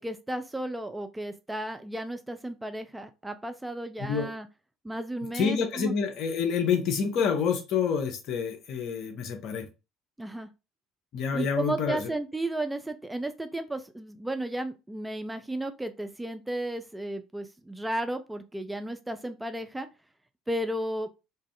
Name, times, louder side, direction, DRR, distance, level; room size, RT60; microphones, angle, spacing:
voice 1, 0.0-4.5 4.8-5.9 10.2-10.5 11.3-19.9 20.5-21.1, right 1 dB, 10° right, 0.4 m, -34 dB
voice 2, 5.3-9.7 11.1-12.1, left 6 dB, 55° left, 0.7 m, -28 dB
2.5 x 2.3 x 3.3 m
figure-of-eight pair, 60°, 0 cm